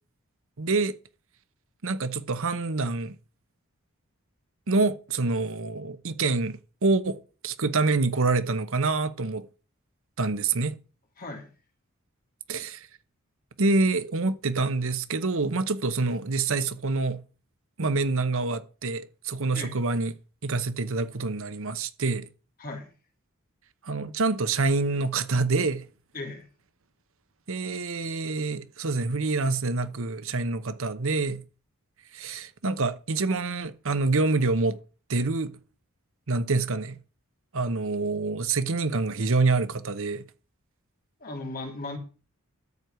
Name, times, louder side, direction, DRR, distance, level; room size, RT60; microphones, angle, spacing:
voice 1, 0.6-1.0 1.8-3.1 4.7-7.2 7.4-9.5 10.2-10.7 12.5-12.9 13.6-17.2 17.8-20.1 20.4-22.2 23.8-25.8 27.5-31.4 32.1-34.8 35.1-35.5 36.3-36.9 37.5-40.2, right 3 dB, 65° right, 0.9 m, -26 dB
voice 2, 11.2-11.5 19.5-19.7 22.6-22.9 26.1-26.5 41.2-42.0, left 2 dB, 40° left, 2.9 m, -36 dB
13.5 x 4.7 x 8.0 m
head